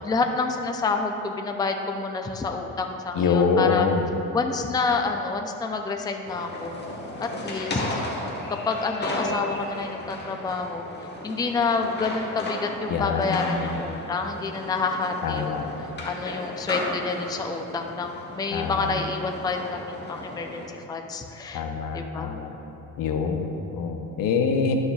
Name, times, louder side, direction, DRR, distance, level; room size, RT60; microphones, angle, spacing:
voice 1, 0.0-3.9 4.3-6.8 7.2-8.0 8.7-10.9 11.2-21.6 21.9-22.3, left 4 dB, 10° left, 4 dB, 0.4 m, -28 dB
voice 2, 3.1-4.1 12.9-13.7 15.2-15.7 18.5-18.9 21.5-22.5 23.0-24.8, left 5 dB, 75° left, 4 dB, 0.8 m, -25 dB
sound 1, 6.3-20.7, left 1 dB, 30° left, 1.2 m, -35 dB
11.0 x 6.4 x 2.3 m, 3.0 s
cardioid pair, 105°, 34 cm